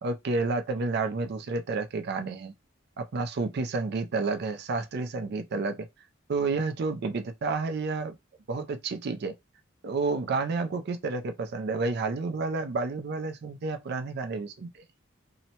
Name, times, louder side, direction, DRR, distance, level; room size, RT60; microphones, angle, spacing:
voice 1, 0.0-2.5 3.0-5.9 6.3-8.1 8.5-9.3 9.8-14.8, right 3 dB, 55° right, 0.4 m, -30 dB
2.8 x 2.1 x 2.8 m
head